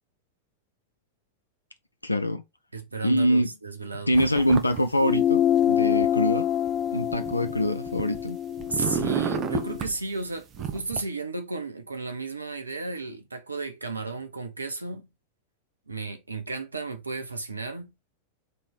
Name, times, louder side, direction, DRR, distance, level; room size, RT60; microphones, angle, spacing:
voice 1, 2.0-2.4 3.0-3.5 4.1-6.5 6.9-8.4, equal, 85° left, 0.5 m, -24 dB
voice 2, 2.7-4.1 8.7-15.1 15.9-17.9, right 3 dB, 80° right, 1.2 m, -33 dB
sound 1, 4.1-4.8 5.1-6.1 6.7-8.3 8.6-9.9 10.5-11.0, right 8 dB, 30° right, 1.1 m, -31 dB
sound 2, 5.0-9.8, left 10 dB, 35° left, 0.7 m, -26 dB
6.4 x 3.7 x 4.5 m
figure-of-eight pair, 90°, 0 cm